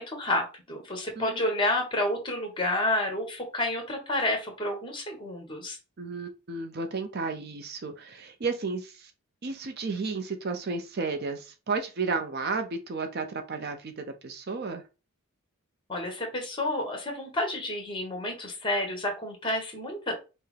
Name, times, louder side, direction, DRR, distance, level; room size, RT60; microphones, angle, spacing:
voice 1, 0.0-5.8 15.9-20.1, left 1 dB, 20° left, 3 dB, 1.2 m, -30 dB
voice 2, 6.0-9.1 9.4-14.8, right 4 dB, 45° right, 7 dB, 0.5 m, -33 dB
5.6 x 2.1 x 3.3 m, 0.30 s
head